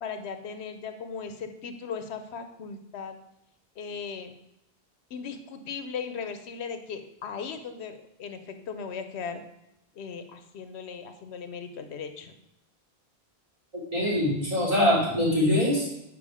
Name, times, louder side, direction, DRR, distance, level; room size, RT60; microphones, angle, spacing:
voice 1, 0.0-3.1 3.8-4.4 5.1-9.4 10.0-12.3, left 6 dB, 90° left, 8 dB, 1.0 m, -37 dB
voice 2, 13.9-15.9, left 1 dB, 35° right, -7 dB, 2.7 m, -23 dB
7.1 x 4.7 x 4.9 m, 0.85 s
omnidirectional pair, 1.1 m